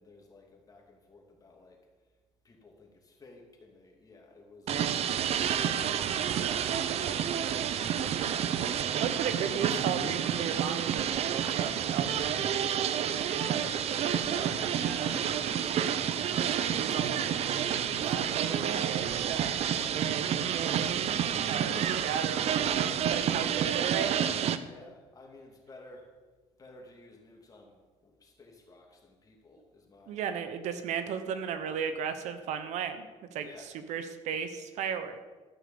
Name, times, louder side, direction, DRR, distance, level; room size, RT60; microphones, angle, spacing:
voice 1, 0.0-1.8 2.4-8.9 17.6-19.2 19.5-22.0 24.6-26.1 26.6-30.2 33.4-33.7, left 2 dB, 30° left, 2.7 m, -55 dB
sound 1, 4.7-24.6, right 9 dB, 60° right, 0.7 m, -29 dB
voice 2, 9.0-15.4 15.6-16.4 16.7-17.4 17.8-19.5 20.9-21.0 21.5-24.2 30.1-33.0 33.3-33.5 33.9-35.3, right 7 dB, 75° right, 1.1 m, -36 dB
13.0 x 6.5 x 7.1 m
cardioid pair, 100°, 12 cm